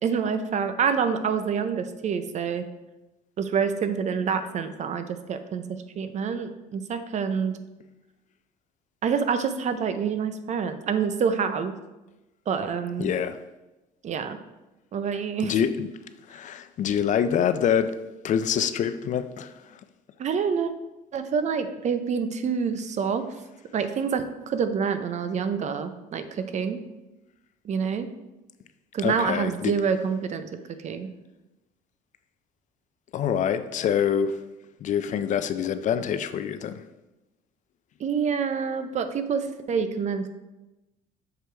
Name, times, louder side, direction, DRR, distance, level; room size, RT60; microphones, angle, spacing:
voice 1, 0.0-2.6 3.4-5.6 6.0-7.6 9.0-11.8 12.5-13.1 14.0-14.4 14.9-15.5 20.2-20.7 21.1-23.3 23.7-26.8 27.6-28.1 28.9-31.1 38.0-40.3, right 6 dB, 45° right, 10 dB, 0.5 m, -27 dB
voice 2, 13.0-13.4 15.4-15.9 16.3-18.0 18.2-19.8 29.0-29.7 33.1-34.4 34.8-36.8, left 8 dB, 50° left, 11 dB, 0.4 m, -26 dB
6.8 x 4.5 x 3.3 m, 1.0 s
cardioid pair, 105°, 17 cm